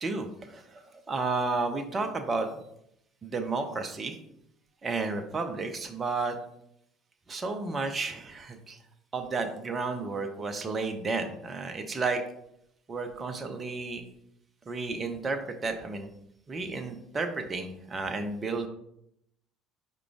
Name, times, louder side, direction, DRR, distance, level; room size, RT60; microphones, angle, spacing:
voice 1, 0.0-2.5 3.2-4.2 4.8-6.4 7.3-8.8 9.1-12.2 12.9-14.0 14.7-16.1 16.5-18.7, right 3 dB, 30° right, 5 dB, 0.5 m, -32 dB
4.9 x 2.2 x 4.7 m, 0.77 s
figure-of-eight pair, 60°, 0 cm